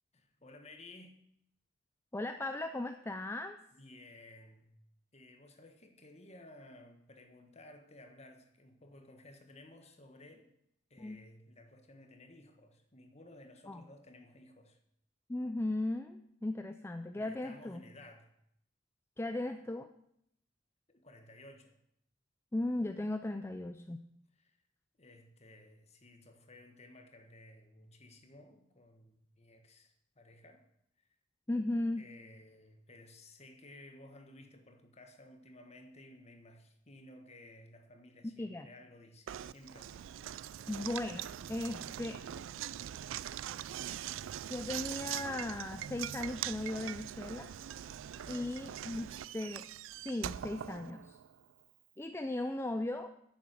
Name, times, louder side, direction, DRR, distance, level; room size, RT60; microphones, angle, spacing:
voice 1, 0.1-1.1 3.7-4.7 5.1-10.5 10.9-14.8 17.1-18.3 20.9-21.8 24.4-24.6 25.0-30.6 32.0-40.2 48.1-48.6 48.9-49.3, left 1 dB, 35° left, 5 dB, 1.5 m, -56 dB
voice 2, 2.1-3.6 11.0-11.2 13.7-13.8 15.3-17.8 19.2-19.9 22.5-24.0 31.5-32.1 38.4-38.7 40.7-42.2 44.5-47.5 48.3-49.7 50.0-51.2 52.0-53.1, left 1 dB, 15° left, 7 dB, 0.4 m, -37 dB
Knock, 39.3-51.4, right 11 dB, 90° right, 0.3 m, -42 dB
10.0 x 7.3 x 7.6 m, 0.76 s
head